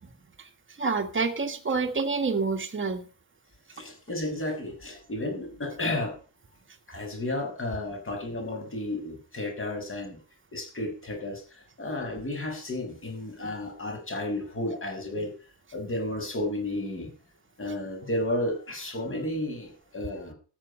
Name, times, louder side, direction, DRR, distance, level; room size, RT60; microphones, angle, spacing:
voice 1, 0.8-3.1, right 4 dB, 25° right, 5 dB, 1.8 m, -27 dB
voice 2, 3.7-6.1 6.9-10.2 10.5-15.3 15.7-17.1 17.6-20.3, left 1 dB, 25° left, 2 dB, 6.0 m, -32 dB
13.5 x 9.6 x 5.4 m, 0.37 s
wide cardioid pair, 165°, 46 cm